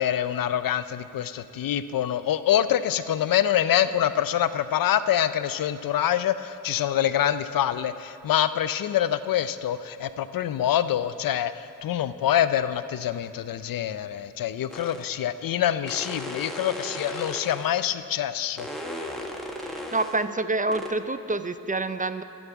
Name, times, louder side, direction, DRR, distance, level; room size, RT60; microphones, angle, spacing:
voice 1, 0.0-18.7, left 10 dB, 75° left, 13 dB, 0.5 m, -25 dB
sound 1, 14.7-15.1 15.9-17.8 18.6-20.3 20.7-20.9, left 1 dB, ahead, 1.4 m, -36 dB
voice 2, 19.6-22.2, right 2 dB, 25° right, 11 dB, 0.5 m, -27 dB
9.6 x 7.2 x 8.3 m, 2.7 s
cardioid pair, 60°, 34 cm